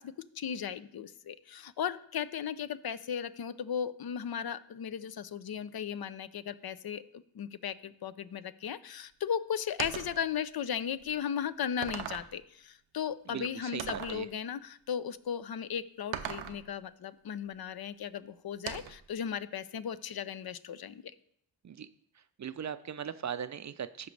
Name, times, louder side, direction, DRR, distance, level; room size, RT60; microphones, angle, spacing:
voice 1, 0.0-21.0, left 8 dB, 55° left, 15 dB, 0.6 m, -36 dB
sound 1, 9.8-10.2 11.0-11.1 11.8-12.4 13.8-14.2 16.1-16.6 18.7-19.1, right 9 dB, 85° right, 0.6 m, -39 dB
voice 2, 13.3-14.3 21.6-21.9 22.4-24.1, right 8 dB, 40° right, 12 dB, 0.5 m, -39 dB
13.0 x 5.1 x 3.3 m, 0.67 s
cardioid pair, 40°, 46 cm